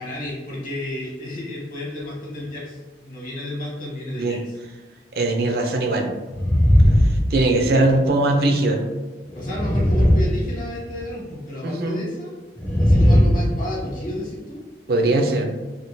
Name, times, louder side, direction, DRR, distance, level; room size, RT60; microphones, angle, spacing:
voice 1, 0.0-4.6 9.3-12.4 12.8-14.6, left 1 dB, 50° left, -5 dB, 1.1 m, -32 dB
voice 2, 5.1-6.1 7.3-8.8 11.6-12.0 14.9-15.5, right 2 dB, 55° right, 3 dB, 0.4 m, -20 dB
sound 1, 6.3-7.9 9.3-11.0 12.6-14.1, equal, 10° left, 0.5 m, -18 dB
3.6 x 2.2 x 2.6 m, 1.2 s
head